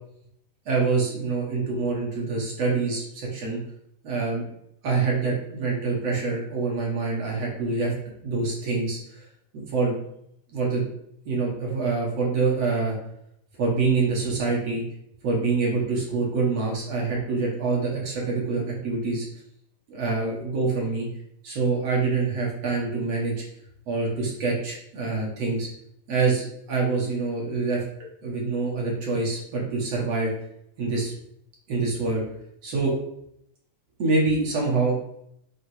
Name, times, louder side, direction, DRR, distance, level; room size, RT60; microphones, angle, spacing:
voice 1, 0.7-3.6 4.0-4.5 4.8-7.9 8.2-9.2 9.5-10.0 10.5-10.8 11.2-12.9 13.6-14.8 15.2-19.2 19.9-21.1 21.4-23.4 23.9-25.7 26.1-27.8 28.2-30.3 30.8-31.1 31.7-32.2 32.6-32.9 34.0-35.0, right 4 dB, 45° right, -4 dB, 3.2 m, -25 dB
8.5 x 4.7 x 5.0 m, 0.75 s
omnidirectional pair, 4.1 m